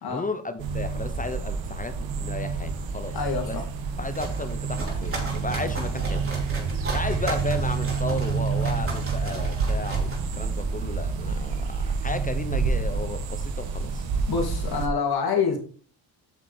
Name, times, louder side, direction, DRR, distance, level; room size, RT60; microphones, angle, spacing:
voice 1, 0.1-3.2 3.5-3.6 4.0-6.3 6.9-14.0, left 2 dB, 20° left, 10 dB, 0.8 m, -34 dB
sound 1, 0.6-14.9, right 5 dB, 85° right, 1.6 m, -28 dB
voice 2, 3.1-3.6 14.3-15.6, left 5 dB, 55° left, 3 dB, 2.8 m, -26 dB
sound 2, 3.8-10.8, right 2 dB, 30° right, 3.6 m, -36 dB
8.4 x 6.6 x 4.4 m, 0.42 s
cardioid pair, 100°, 44 cm